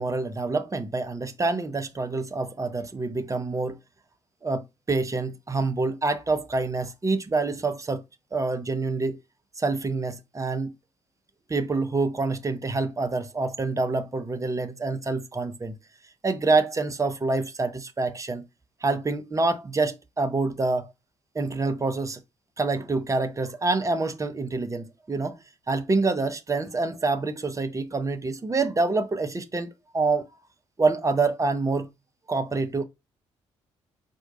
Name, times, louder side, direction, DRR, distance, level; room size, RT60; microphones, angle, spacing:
voice 1, 0.0-3.8 4.4-8.0 8.3-9.2 9.6-10.7 11.5-15.8 16.2-18.4 18.8-20.9 21.3-22.2 22.6-25.4 25.7-29.7 29.9-30.3 30.8-31.9 32.3-32.8, right 3 dB, 20° right, 0.8 m, -26 dB
4.5 x 2.6 x 3.8 m
figure-of-eight pair, 45°, 15 cm